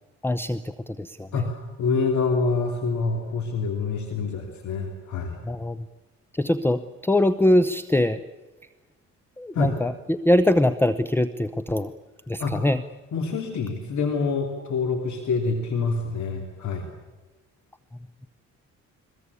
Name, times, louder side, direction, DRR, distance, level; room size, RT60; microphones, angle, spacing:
voice 1, 0.2-1.3 5.4-5.8 6.3-8.2 9.4-11.9 12.3-12.8, left 1 dB, 5° left, 13 dB, 0.8 m, -22 dB
voice 2, 1.3-5.4 9.5-9.7 12.4-12.7 13.1-16.9, left 4 dB, 70° left, 4 dB, 2.9 m, -26 dB
23.0 x 21.0 x 8.3 m, 1.2 s
cardioid pair, 90°, 30 cm